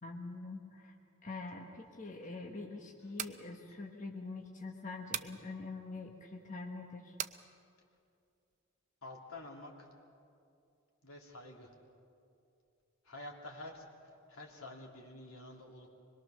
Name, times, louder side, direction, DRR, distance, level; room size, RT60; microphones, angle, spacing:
voice 1, 0.0-0.9 1.2-7.2, left 3 dB, 35° left, 1 dB, 1.3 m, -44 dB
sound 1, 3.0-3.4 5.1-5.4 7.2-7.4, right 10 dB, 35° right, 0.5 m, -38 dB
voice 2, 9.0-9.9 11.0-11.8 13.0-15.9, left 2 dB, 80° left, 0 dB, 2.9 m, -49 dB
24.0 x 21.5 x 6.5 m, 2.6 s
head